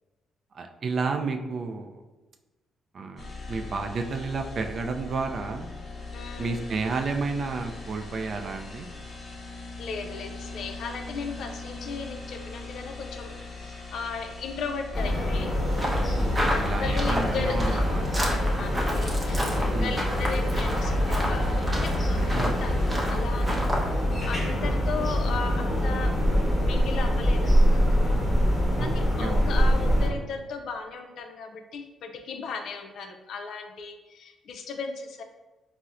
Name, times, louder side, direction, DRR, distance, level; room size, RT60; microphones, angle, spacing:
voice 1, 0.5-2.0 2.9-5.7 6.4-8.9 16.1-18.3 19.7-20.0 22.3-22.5 28.8-28.9 29.2-29.4, right 4 dB, 50° right, 5 dB, 0.3 m, -31 dB
sound 1, 3.2-23.0, left 2 dB, 40° left, 0.7 m, -41 dB
voice 2, 6.1-6.6 9.8-15.6 16.5-17.8 18.6-27.8 28.8-35.2, left 5 dB, 70° left, 5 dB, 0.4 m, -36 dB
sound 2, 14.9-30.1, equal, 25° left, 1.0 m, -24 dB
sound 3, 15.7-23.9, equal, 15° right, 0.7 m, -32 dB
4.1 x 2.0 x 2.4 m, 1.2 s
cardioid pair, 90°, 0 cm